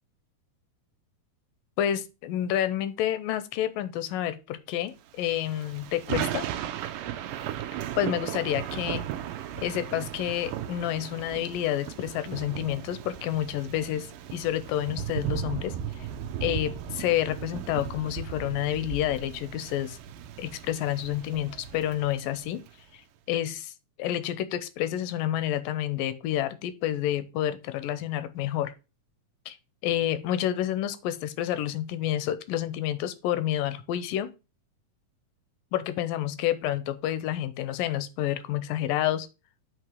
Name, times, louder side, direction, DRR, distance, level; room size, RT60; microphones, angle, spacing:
voice 1, 1.8-6.5 8.0-9.0 9.6-16.1 16.4-20.0 20.4-22.6 22.9-23.0 23.3-23.7 24.0-28.7 29.5-29.6 29.8-34.3 35.7-39.3, left 12 dB, 85° left, 2.4 m, -29 dB
Thunder / Rain, 5.2-22.7, right 10 dB, 85° right, 2.3 m, -36 dB
7.9 x 3.1 x 6.1 m
omnidirectional pair, 3.8 m